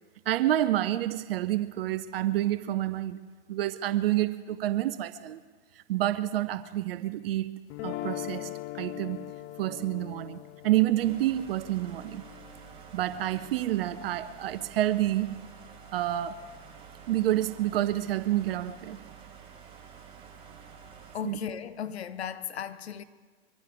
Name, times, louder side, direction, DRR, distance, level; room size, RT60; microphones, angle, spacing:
voice 1, 0.3-3.2 3.5-5.4 5.9-7.5 7.8-8.5 8.8-9.2 9.6-12.2 12.9-15.3 15.9-16.4 17.1-19.0 21.2-21.4, right 14 dB, 65° right, 0.7 m, -28 dB
sound 1, 7.7-13.8, left 17 dB, 35° left, 0.5 m, -41 dB
sound 2, 11.0-21.2, right 6 dB, 15° right, 4.0 m, -49 dB
voice 2, 21.1-23.0, left 8 dB, 85° left, 0.9 m, -36 dB
24.0 x 15.0 x 3.5 m
hypercardioid pair, 110°, 31 cm